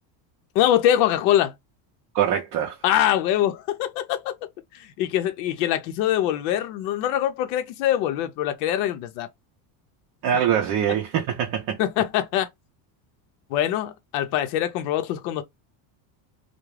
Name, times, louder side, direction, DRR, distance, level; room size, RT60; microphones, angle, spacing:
voice 1, 0.5-1.5 2.8-4.3 5.0-9.3 11.8-12.5 13.5-15.4, left 11 dB, 80° left, 0.6 m, -23 dB
voice 2, 2.1-2.8 10.2-11.8, right 9 dB, 45° right, 0.5 m, -23 dB
2.3 x 2.1 x 3.1 m
cardioid pair, 130°, 49 cm